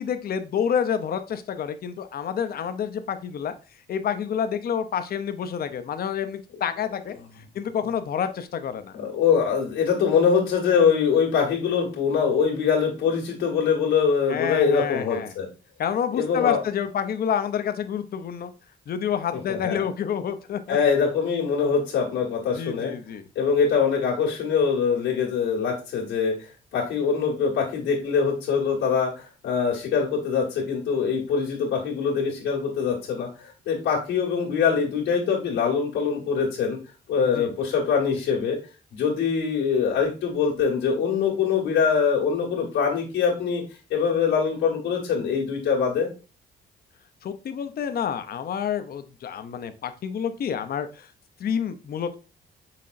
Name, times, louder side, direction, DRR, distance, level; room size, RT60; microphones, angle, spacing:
voice 1, 0.0-3.5 3.9-7.1 7.5-9.0 14.3-15.3 15.8-18.5 18.9-20.8 22.5-23.2 37.3-37.5 47.2-51.1 51.4-52.1, left 8 dB, 50° left, 9 dB, 0.6 m, -28 dB
voice 2, 8.9-15.5 16.1-16.6 19.5-19.8 20.7-22.9 23.4-26.3 26.7-36.8 37.1-38.6 38.9-43.6 43.9-46.1, left 6 dB, 90° left, -4 dB, 1.7 m, -23 dB
5.8 x 3.6 x 2.5 m, 0.34 s
cardioid pair, 90°, 20 cm